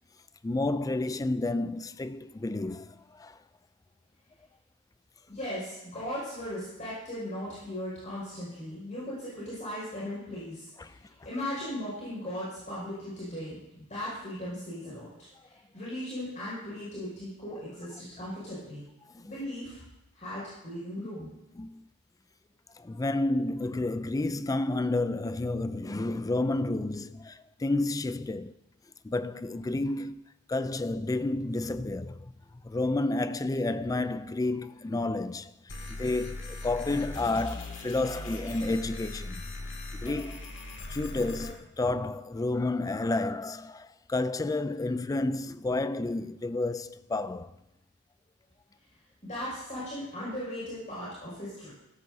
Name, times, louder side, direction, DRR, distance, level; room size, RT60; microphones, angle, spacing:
voice 1, 0.4-3.4 10.8-11.0 19.1-19.3 21.6-21.9 22.8-28.5 29.0-32.3 32.6-35.5 35.9-39.4 39.9-40.5 40.9-47.5, left 2 dB, 15° left, 0.3 m, -30 dB
voice 2, 5.3-15.1 15.5-18.8 19.2-19.8 20.1-21.3 49.2-51.7, left 1 dB, 35° left, 5.8 m, -38 dB
sound 1, 35.7-41.5, left 2 dB, 55° left, 2.1 m, -39 dB
16.5 x 14.5 x 2.7 m
head